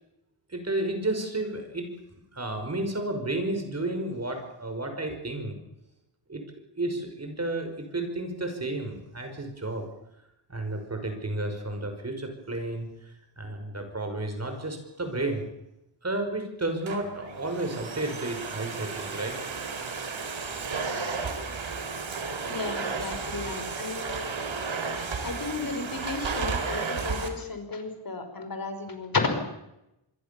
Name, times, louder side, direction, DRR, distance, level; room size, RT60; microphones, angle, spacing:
voice 1, 0.5-1.9 2.3-5.6 6.3-6.4 6.8-9.9 10.5-12.9 13.4-15.5 16.0-19.4 21.1-21.2, right 2 dB, 35° right, 6 dB, 5.9 m, -32 dB
Domestic sounds home sounds, 16.6-27.3, right 4 dB, 80° right, 4.0 m, -33 dB
voice 2, 22.4-24.1 25.2-29.4, left 3 dB, 45° left, 7 dB, 5.3 m, -33 dB
26.5 x 22.0 x 7.2 m, 0.87 s
wide cardioid pair, 130°, 46 cm